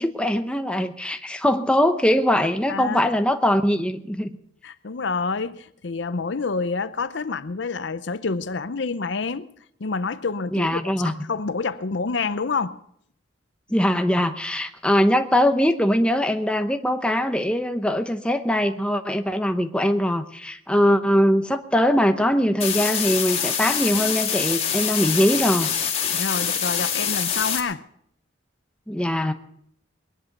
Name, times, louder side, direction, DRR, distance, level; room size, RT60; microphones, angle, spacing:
voice 1, 0.0-4.3 10.5-11.1 13.7-25.7 28.9-29.3, equal, 5° left, 0.8 m, -21 dB
voice 2, 2.7-3.1 4.6-9.5 9.8-12.8 26.1-27.8, left 4 dB, 65° left, 0.6 m, -28 dB
sound 1, 22.6-27.6, left 8 dB, 30° left, 2.6 m, -25 dB
21.5 x 11.0 x 6.0 m
head